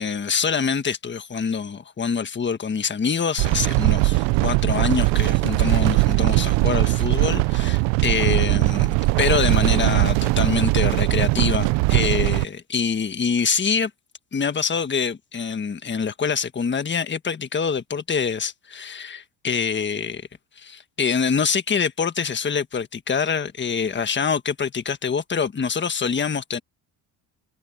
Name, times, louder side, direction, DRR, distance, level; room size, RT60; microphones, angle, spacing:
voice 1, 0.0-13.9 14.3-20.3 20.6-26.6, left 6 dB, 25° left, 1.5 m, -25 dB
sound 1, 3.4-12.4, right 23 dB, 90° right, 0.8 m, -20 dB
cardioid pair, 100°, 43 cm